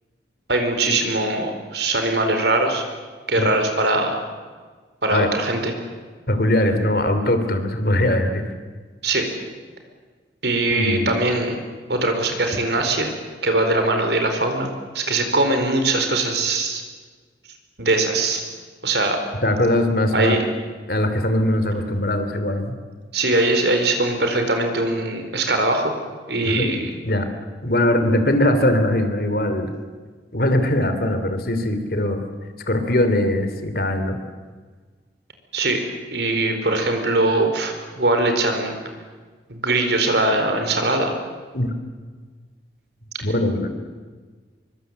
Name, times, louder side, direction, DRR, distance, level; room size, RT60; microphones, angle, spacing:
voice 1, 0.5-2.8 3.3-4.2 5.0-5.7 9.0-9.2 10.4-11.6 11.9-13.1 13.4-14.7 14.9-16.8 17.8-18.4 18.8-19.2 20.1-20.4 23.1-25.9 26.3-26.9 35.5-35.8 36.1-38.8 39.5-41.1, right 2 dB, 65° right, 5 dB, 4.5 m, -21 dB
voice 2, 6.3-8.5 10.7-11.1 19.4-20.4 20.9-22.7 26.4-27.3 27.6-29.7 30.3-32.2 32.7-34.2 41.5-41.7 43.2-43.7, left 1 dB, 55° left, 8 dB, 3.1 m, -21 dB
25.5 x 23.5 x 8.2 m, 1.5 s
head